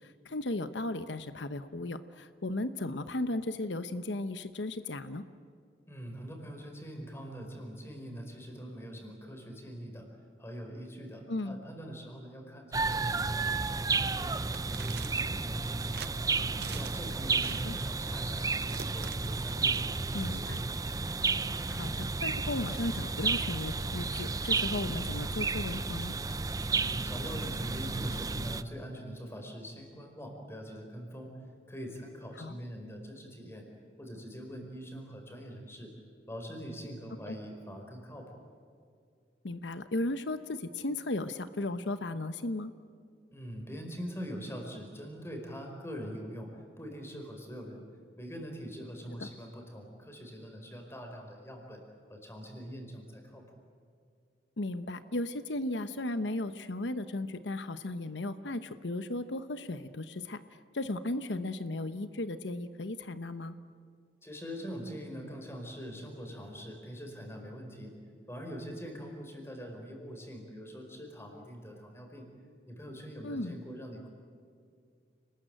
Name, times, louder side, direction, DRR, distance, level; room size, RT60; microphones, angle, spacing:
voice 1, 0.2-5.2 11.3-11.6 16.6-16.7 17.6-17.7 20.1-20.6 21.7-26.1 32.4-32.6 37.3-37.4 39.4-42.7 54.6-60.4 60.7-63.5 73.2-73.6, left 2 dB, 85° left, 11 dB, 0.9 m, -35 dB
voice 2, 5.9-10.1 10.4-16.3 16.7-20.5 26.7-31.3 31.7-33.7 34.0-35.9 36.3-38.3 43.3-47.8 48.2-51.8 52.1-53.4 64.2-67.9 68.3-72.3 72.7-74.1, equal, 15° left, 2 dB, 4.8 m, -43 dB
sound 1, 12.7-28.6, right 4 dB, 20° right, 0.6 m, -32 dB
sound 2, 14.5-15.4 15.9-16.1 16.6-17.0 17.3-17.8 18.5-19.8, right 8 dB, 65° right, 0.7 m, -45 dB
30.0 x 20.5 x 9.1 m, 2.3 s
head